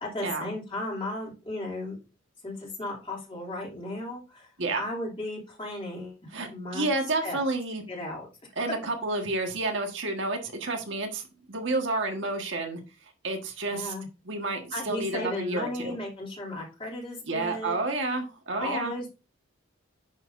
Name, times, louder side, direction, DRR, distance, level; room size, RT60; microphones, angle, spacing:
voice 1, 0.0-2.0 2.4-6.9 7.2-7.4 7.9-8.3 8.6-8.7 13.7-14.1 14.7-17.8 18.6-19.1, left 1 dB, 25° left, -2 dB, 2.8 m, -35 dB
voice 2, 6.3-7.8 8.5-13.9 14.2-16.0 17.3-18.9, right 2 dB, 60° right, 3 dB, 1.5 m, -30 dB
9.8 x 6.0 x 2.6 m, 0.31 s
head